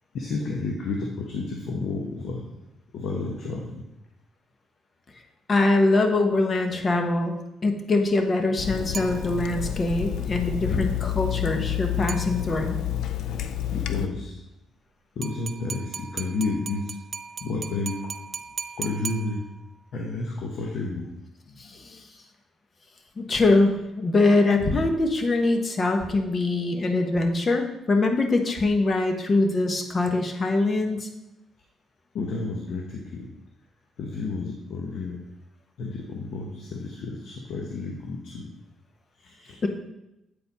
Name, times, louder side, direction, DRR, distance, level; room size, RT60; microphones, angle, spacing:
voice 1, 0.1-2.5 2.9-3.8 10.2-10.4 13.7-14.4 15.2-16.9 17.4-18.1 18.8-19.4 19.9-21.1 21.5-21.7 32.1-33.3 34.0-35.2 35.8-38.5 39.2-39.6, left 3 dB, 70° left, 1 dB, 0.8 m, -31 dB
voice 2, 5.5-12.8 21.6-22.0 23.2-31.1 39.6-39.7, left 2 dB, 40° left, 5 dB, 1.0 m, -23 dB
Water tap faucet / Sink (filling or washing), 8.6-14.1, left 11 dB, 85° left, 0.4 m, -29 dB
sound 1, 8.9-9.8 12.1-12.8 15.2-19.8, right 5 dB, 40° right, 0.4 m, -38 dB
8.5 x 4.2 x 4.1 m, 0.91 s
cardioid pair, 90°, 0 cm